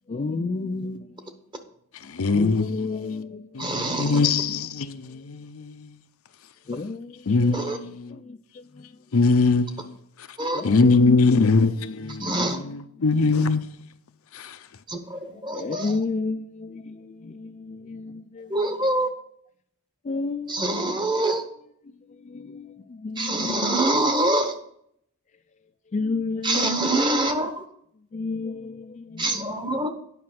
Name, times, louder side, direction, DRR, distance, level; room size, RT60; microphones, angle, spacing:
voice 1, 0.1-1.4 2.3-3.6 3.8-4.5 6.7-7.7 8.1-8.9 10.5-12.5 15.3-18.6 20.0-21.2 22.1-23.7 25.9-27.0 28.1-29.9, left 3 dB, 35° left, 0.4 m, -32 dB
voice 2, 2.0-3.2 3.5-6.0 7.3-8.2 9.1-9.9 10.2-10.3 10.6-13.9 14.3-14.6, left 3 dB, 70° left, 0.6 m, -22 dB
voice 3, 3.6-4.2 7.5-7.8 10.4-10.6 12.2-12.6 14.9-15.9 18.5-19.1 20.5-21.4 23.2-24.5 26.4-27.6 29.2-29.9, right 1 dB, 20° right, 1.0 m, -25 dB
9.5 x 5.8 x 5.9 m
head